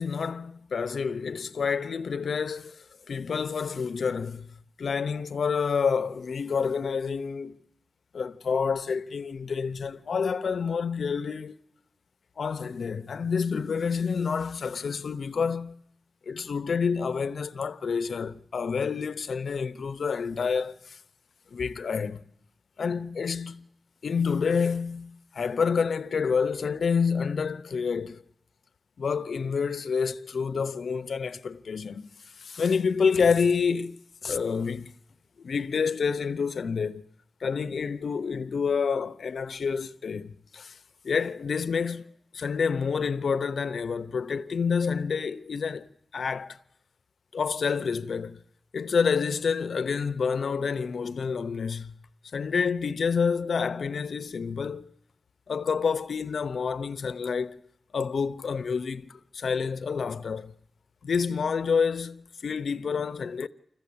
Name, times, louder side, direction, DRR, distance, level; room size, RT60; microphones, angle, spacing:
voice 1, 0.0-7.6 8.1-11.6 12.4-15.8 16.3-21.0 21.5-22.2 22.8-23.7 24.0-28.2 29.0-32.1 32.4-34.9 35.4-37.0 37.4-40.8 41.0-45.9 46.1-46.6 47.3-48.4 48.7-52.0 52.3-54.9 55.5-57.6 57.9-60.5 61.0-63.5, left 5 dB, 80° left, 0.8 m, -28 dB
26.5 x 15.0 x 8.6 m
wide cardioid pair, 140°, 0 cm